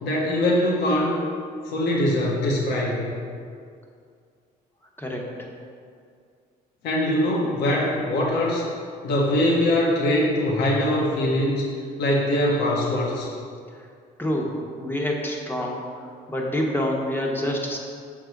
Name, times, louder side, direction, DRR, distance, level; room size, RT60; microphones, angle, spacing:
voice 1, 0.0-1.2 1.6-3.1 6.8-8.6 9.0-11.6 12.0-13.3, left 1 dB, 85° left, -3 dB, 1.3 m, -22 dB
voice 2, 5.0-5.3 13.7-13.8 14.2-17.8, left 1 dB, 10° left, -1 dB, 1.1 m, -27 dB
6.4 x 3.9 x 6.0 m, 2.2 s
cardioid pair, 110°, 17 cm